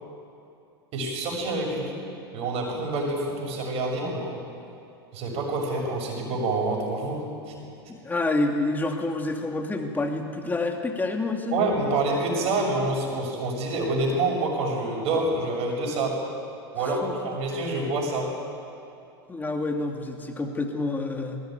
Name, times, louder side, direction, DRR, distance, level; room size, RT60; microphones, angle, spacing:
voice 1, 0.9-2.0 2.3-4.4 5.1-7.5 11.5-16.1 16.7-18.3, right 2 dB, 45° right, 0 dB, 7.0 m, -27 dB
voice 2, 7.9-11.6 16.8-17.4 19.3-21.4, left 2 dB, 15° left, 3 dB, 2.4 m, -28 dB
20.5 x 17.0 x 9.4 m, 2.6 s
hypercardioid pair, 100°, 14 cm